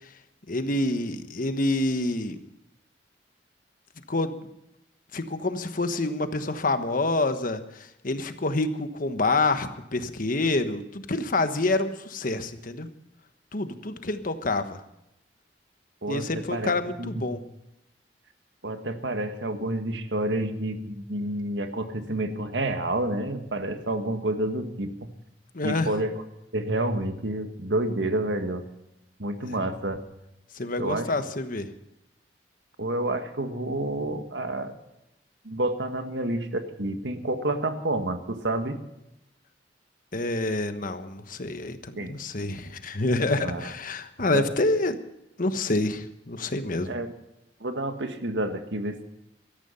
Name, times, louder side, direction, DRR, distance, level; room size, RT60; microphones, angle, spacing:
voice 1, 0.5-2.4 4.1-4.3 5.1-12.9 13.5-14.8 16.1-17.4 25.5-25.9 30.5-31.7 40.1-45.0 45.4-46.9, left 2 dB, 50° left, 9 dB, 1.3 m, -27 dB
voice 2, 16.0-16.7 17.0-17.2 18.6-25.1 25.6-26.2 26.5-28.6 29.2-30.0 30.8-31.1 32.8-34.7 35.4-38.8 42.0-42.1 43.4-43.7 44.3-44.5 46.9-47.1 47.6-49.1, right 1 dB, 85° right, 7 dB, 1.8 m, -29 dB
17.0 x 13.5 x 5.6 m, 0.87 s
head